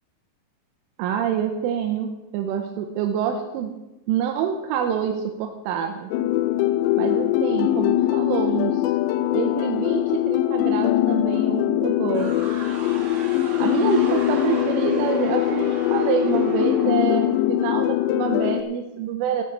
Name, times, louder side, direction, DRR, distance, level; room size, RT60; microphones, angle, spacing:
voice 1, 1.0-3.7 4.1-6.1 7.0-8.8 9.3-12.4 13.6-19.4, right 8 dB, 85° right, 4 dB, 3.3 m, -26 dB
sound 1, 6.1-18.6, left 14 dB, 85° left, 2.5 m, -22 dB
sound 2, 12.1-17.9, right 3 dB, 60° right, 4.9 m, -37 dB
14.0 x 9.9 x 4.6 m, 1.0 s
omnidirectional pair, 5.7 m